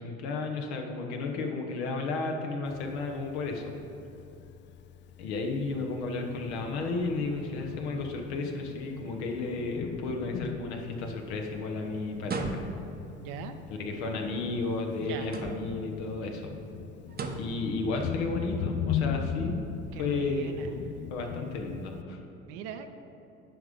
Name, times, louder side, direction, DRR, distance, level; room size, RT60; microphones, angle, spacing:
voice 1, 0.0-3.8 5.2-12.6 13.7-16.5 17.4-19.6 20.0-20.6 21.1-22.2, left 3 dB, 70° left, 3 dB, 1.1 m, -33 dB
Thunder, 2.7-22.0, left 8 dB, 35° left, 0.4 m, -39 dB
sound 1, 12.2-13.0 15.2-15.9 17.1-17.6, right 4 dB, 30° right, 0.8 m, -35 dB
voice 2, 13.2-13.5 15.0-15.4 19.9-20.7 22.5-22.9, right 7 dB, 65° right, 7 dB, 0.7 m, -40 dB
10.5 x 3.7 x 5.2 m, 2.9 s
hypercardioid pair, 70°, 34 cm